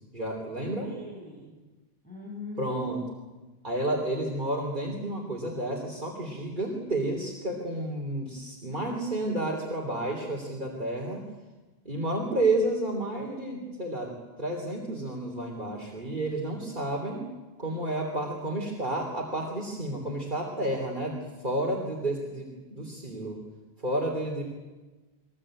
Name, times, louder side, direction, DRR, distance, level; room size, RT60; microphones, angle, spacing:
voice 1, 0.1-0.9 2.6-3.0 3.6-11.3 11.9-17.2 17.6-23.4 23.8-24.4, right 1 dB, 45° right, -1 dB, 3.4 m, -31 dB
voice 2, 0.7-1.6 2.0-2.9 18.1-18.2, left 3 dB, 5° left, -6 dB, 8.0 m, -42 dB
22.5 x 21.0 x 8.9 m, 1.2 s
omnidirectional pair, 1.1 m